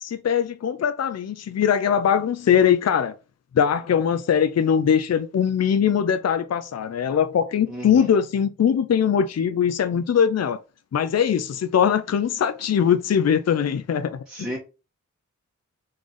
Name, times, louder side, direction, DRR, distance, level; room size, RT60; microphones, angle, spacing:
voice 1, 0.0-3.1 3.5-10.6 10.9-14.2, left 8 dB, 55° left, 0.5 m, -21 dB
voice 2, 7.7-8.1 14.3-14.6, equal, ahead, 1.9 m, -33 dB
3.8 x 3.3 x 3.8 m
wide cardioid pair, 65°, 30 cm